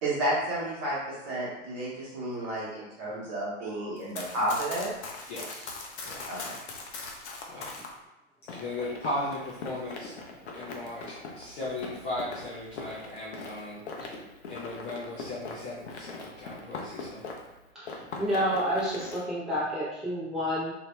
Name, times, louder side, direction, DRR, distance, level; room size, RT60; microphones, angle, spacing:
voice 1, 0.0-4.9 6.3-6.4, right 1 dB, 35° right, -7 dB, 1.4 m, -31 dB
Run, 4.0-7.9 8.5-17.6 17.8-19.2, left 3 dB, 60° left, 0.7 m, -41 dB
voice 2, 5.3-5.7 6.0-6.2 7.5-7.7 8.5-10.1 10.5-13.8 14.5-17.2, left 1 dB, 25° left, -8 dB, 0.5 m, -37 dB
voice 3, 17.7-20.7, equal, ahead, -12 dB, 1.0 m, -30 dB
2.8 x 2.7 x 2.2 m, 0.96 s
hypercardioid pair, 120°, 38 cm